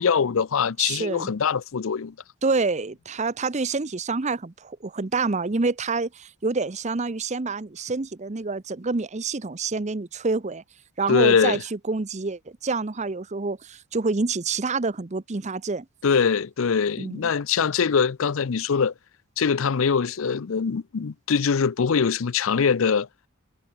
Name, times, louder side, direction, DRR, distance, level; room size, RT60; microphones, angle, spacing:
voice 1, 0.0-2.1 11.1-11.6 16.0-18.9 19.4-23.1, left 6 dB, 65° left, 0.5 m, -22 dB
voice 2, 0.8-1.3 2.4-10.6 11.0-15.8 17.0-17.2, right 3 dB, 30° right, 0.7 m, -27 dB
head